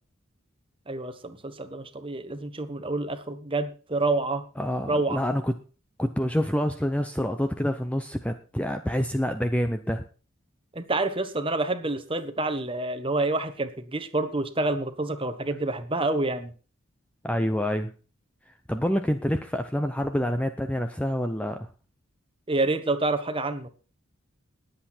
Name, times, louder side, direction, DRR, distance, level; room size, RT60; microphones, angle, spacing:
voice 1, 0.9-4.4 4.9-5.2 10.7-16.5 22.5-23.7, right 2 dB, 25° right, 10 dB, 1.2 m, -28 dB
voice 2, 4.6-5.5 6.0-10.0 17.2-17.9 18.7-21.7, equal, 5° left, 7 dB, 0.6 m, -27 dB
20.0 x 8.0 x 4.4 m, 0.37 s
head